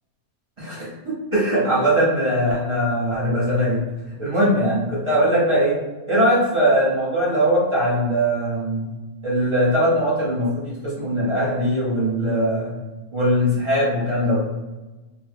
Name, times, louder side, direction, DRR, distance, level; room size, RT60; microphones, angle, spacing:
voice 1, 0.6-3.8 4.2-5.8 6.1-8.9 9.2-12.8 13.1-14.5, equal, 25° right, -8 dB, 0.7 m, -21 dB
2.8 x 2.1 x 3.3 m, 1.2 s
omnidirectional pair, 1.4 m